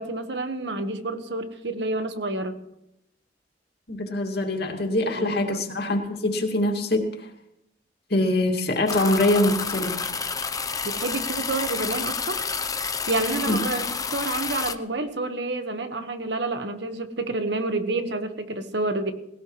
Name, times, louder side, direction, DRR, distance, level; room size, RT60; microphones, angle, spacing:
voice 1, 0.0-2.6 5.1-5.6 10.8-12.4 13.1-13.9 14.1-19.1, right 2 dB, 70° right, 7 dB, 1.4 m, -29 dB
voice 2, 3.9-7.3 8.1-10.0 13.5-13.6, left 1 dB, 65° left, 3 dB, 2.4 m, -24 dB
sound 1, 8.9-14.8, left 5 dB, 20° left, 0.7 m, -29 dB
19.5 x 17.5 x 3.2 m, 0.82 s
head